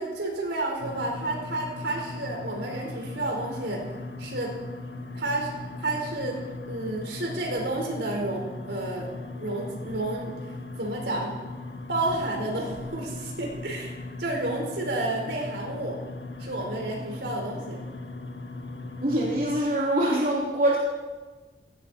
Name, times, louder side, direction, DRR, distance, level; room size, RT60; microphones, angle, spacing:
voice 1, 0.0-3.9 4.2-4.5 5.1-5.5 5.8-6.4 6.7-9.1 9.3-10.3 10.8-11.4 11.9-13.9 14.2-16.0 16.4-17.8, right 2 dB, 75° right, 0 dB, 4.6 m, -30 dB
sound 1, 0.8-19.6, left 2 dB, 85° left, 1.7 m, -38 dB
voice 2, 19.0-20.8, right 1 dB, 50° right, -5 dB, 3.1 m, -24 dB
17.5 x 17.0 x 4.4 m, 1.3 s
head